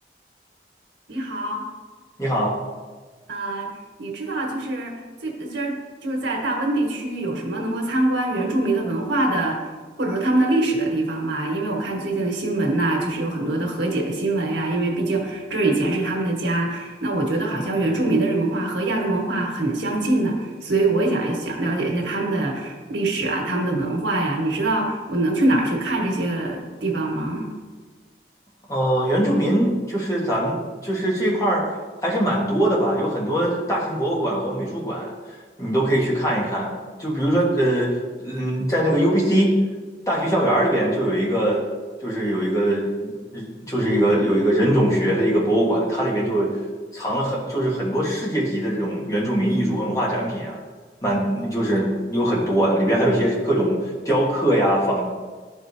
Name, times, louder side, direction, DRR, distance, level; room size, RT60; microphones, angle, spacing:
voice 1, 1.1-1.6 3.3-3.7 4.0-4.9 5.2-5.7 6.0-9.6 10.0-27.5, right 2 dB, 85° right, 0 dB, 1.5 m, -24 dB
voice 2, 2.2-2.5 28.7-31.6 32.0-35.1 35.6-37.9 38.2-39.5 40.1-41.6 42.0-46.5 46.9-50.6 51.0-55.0, right 1 dB, 20° left, -4 dB, 1.5 m, -22 dB
12.0 x 4.8 x 2.7 m, 1.4 s
head